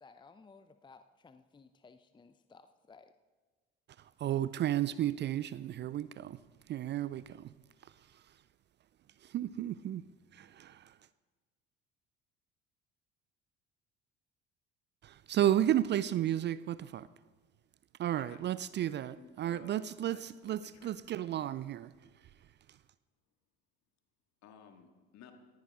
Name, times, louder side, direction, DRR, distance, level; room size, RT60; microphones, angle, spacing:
voice 1, 0.0-3.1, left 4 dB, 15° left, 0.7 m, -58 dB
voice 2, 4.0-6.4 6.7-7.5 7.8-8.2 9.2-10.0 10.3-11.0 15.0-17.1 18.0-21.9, right 12 dB, 35° right, 0.5 m, -33 dB
voice 3, 19.0-19.8 20.1-21.6 24.4-25.3, left 8 dB, 55° left, 2.1 m, -57 dB
19.0 x 14.5 x 3.8 m
figure-of-eight pair, 60°, 33 cm